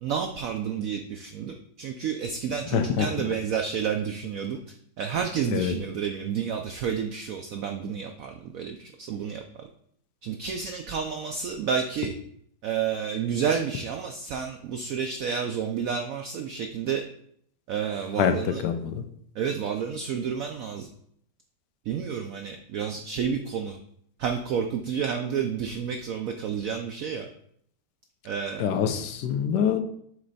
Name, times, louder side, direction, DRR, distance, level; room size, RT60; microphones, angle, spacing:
voice 1, 0.0-9.7 10.2-12.1 12.6-17.0 17.7-18.6 19.3-20.9 21.9-23.8 24.2-27.3 28.2-28.7, right 7 dB, 80° right, 5 dB, 0.7 m, -30 dB
voice 2, 2.7-3.1 5.5-5.7 18.2-19.0 28.6-29.8, left 8 dB, 75° left, 7 dB, 1.1 m, -25 dB
7.7 x 3.2 x 3.9 m, 0.67 s
omnidirectional pair, 2.0 m